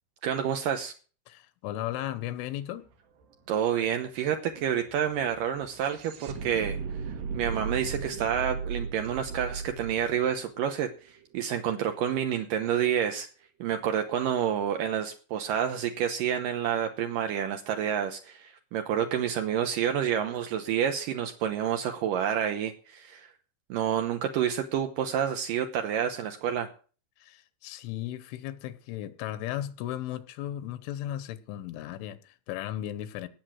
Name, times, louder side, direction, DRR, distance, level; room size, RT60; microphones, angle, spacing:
voice 1, 0.2-0.9 3.5-6.8 7.3-13.3 13.6-23.3 23.7-26.7, right 9 dB, 85° right, 1.9 m, -29 dB
voice 2, 1.3-2.9 27.2-33.3, left 13 dB, 85° left, 3.4 m, -36 dB
sound 1, 2.9-3.0 3.2-11.4, right 5 dB, 65° right, 3.6 m, -37 dB
18.0 x 6.9 x 6.2 m
omnidirectional pair, 5.4 m